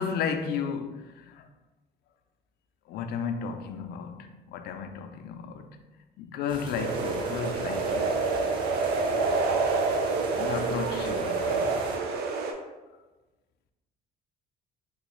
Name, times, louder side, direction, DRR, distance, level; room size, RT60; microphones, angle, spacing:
voice 1, 0.0-1.4 2.9-5.7 6.2-8.2 10.3-11.7, left 6 dB, 70° left, 0.4 m, -33 dB
sound 1, 6.5-12.0, right 2 dB, 30° right, 0.6 m, -42 dB
sound 2, 6.8-12.5, right 4 dB, 70° right, 0.5 m, -27 dB
3.7 x 2.4 x 3.0 m
cardioid pair, 110°, 17 cm